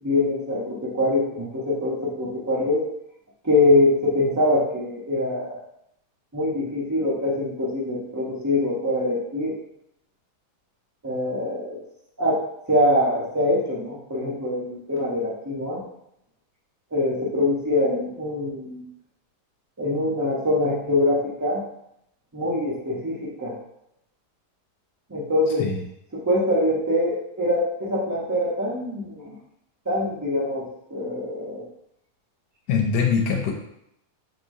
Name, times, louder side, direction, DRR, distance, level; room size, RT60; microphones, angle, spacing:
voice 1, 0.0-2.9 3.4-5.6 6.3-9.6 11.0-11.8 12.2-15.8 16.9-18.9 19.8-21.6 22.3-23.6 25.1-25.7 26.1-29.4 29.9-31.7, left 1 dB, 30° right, -5 dB, 0.3 m, -24 dB
voice 2, 32.7-33.5, left 6 dB, 80° left, 1 dB, 1.2 m, -22 dB
4.7 x 2.8 x 2.6 m, 0.77 s
omnidirectional pair, 1.8 m